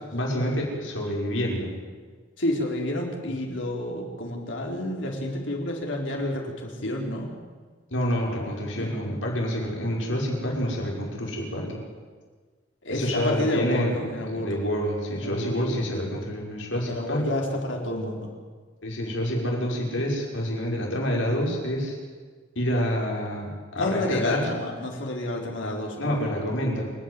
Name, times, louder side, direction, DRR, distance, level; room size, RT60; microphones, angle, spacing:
voice 1, 0.1-1.7 7.9-11.8 12.9-14.0 14.3-17.2 18.8-22.0 22.6-24.5 26.0-26.9, equal, 90° left, -2 dB, 5.8 m, -27 dB
voice 2, 2.4-7.3 8.7-8.9 12.8-14.5 15.1-15.8 16.9-18.3 23.8-26.3, left 1 dB, 70° left, 0 dB, 4.0 m, -29 dB
28.5 x 10.0 x 9.7 m, 1.5 s
head